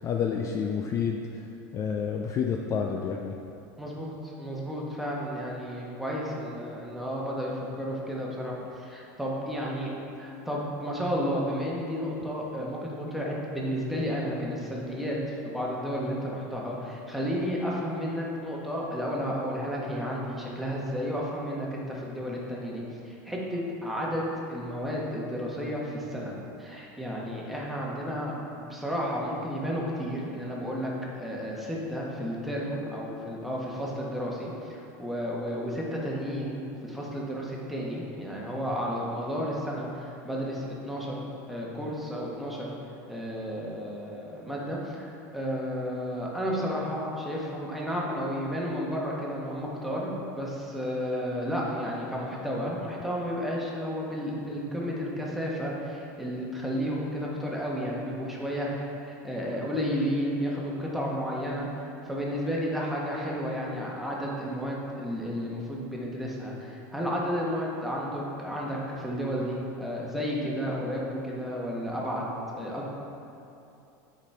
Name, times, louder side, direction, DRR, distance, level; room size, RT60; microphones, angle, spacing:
voice 1, 0.0-1.4 1.7-3.4, left 6 dB, 35° left, 2 dB, 0.4 m, -29 dB
voice 2, 3.8-9.9 10.2-15.2 15.4-26.3 26.6-42.7 43.1-72.3 72.6-72.9, equal, ahead, -4 dB, 1.2 m, -32 dB
8.2 x 5.1 x 3.4 m, 2.8 s
supercardioid pair, 125°, 10 cm